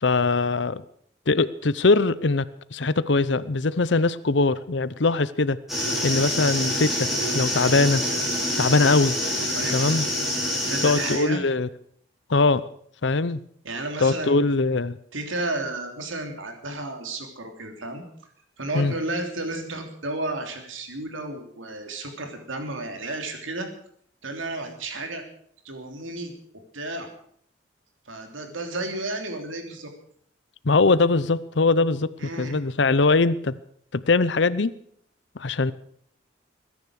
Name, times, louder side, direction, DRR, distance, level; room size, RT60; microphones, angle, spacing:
voice 1, 0.0-0.8 1.3-2.5 2.7-5.6 6.0-7.1 7.3-8.0 8.6-9.2 9.7-10.1 10.8-11.7 12.3-12.6 13.0-13.4 14.0-15.0 18.7-18.9 30.6-32.1 32.4-33.6 33.9-34.7 35.4-35.7, left 3 dB, 65° left, 16 dB, 0.7 m, -21 dB
sound 1, 5.7-11.2, equal, ahead, 5.0 m, -26 dB
voice 2, 10.4-11.4 13.6-14.5 15.1-18.0 18.6-23.7 24.2-25.2 25.6-26.3 26.7-27.1 28.1-29.9 32.2-32.6, right 2 dB, 90° right, 5 dB, 3.3 m, -32 dB
21.5 x 10.5 x 6.4 m, 0.65 s
head